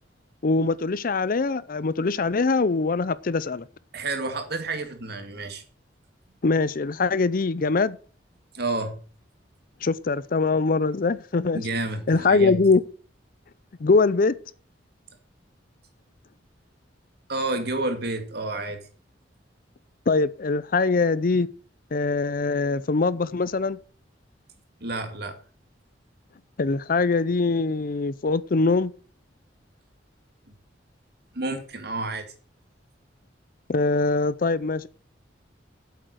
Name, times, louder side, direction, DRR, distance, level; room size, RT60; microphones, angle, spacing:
voice 1, 0.4-3.7 6.4-8.0 9.8-11.6 12.1-12.8 13.8-14.3 20.1-21.5 21.9-23.8 26.6-28.9 33.7-34.9, left 3 dB, 50° left, 0.6 m, -22 dB
voice 2, 3.9-5.6 8.5-9.0 11.5-12.6 17.3-18.8 24.8-25.4 31.3-32.2, right 2 dB, 60° right, 2.1 m, -30 dB
8.4 x 7.8 x 6.5 m
head